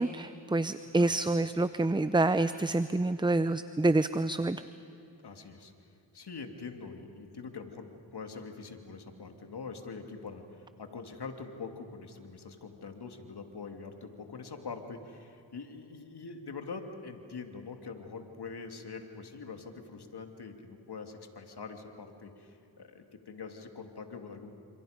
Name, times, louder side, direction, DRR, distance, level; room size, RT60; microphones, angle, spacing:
voice 1, 0.0-4.6, right 2 dB, 10° right, 13 dB, 0.7 m, -27 dB
voice 2, 5.2-5.7 6.1-24.5, left 4 dB, 60° left, 5 dB, 2.8 m, -44 dB
29.0 x 27.0 x 5.3 m, 2.8 s
cardioid pair, 50°, 45 cm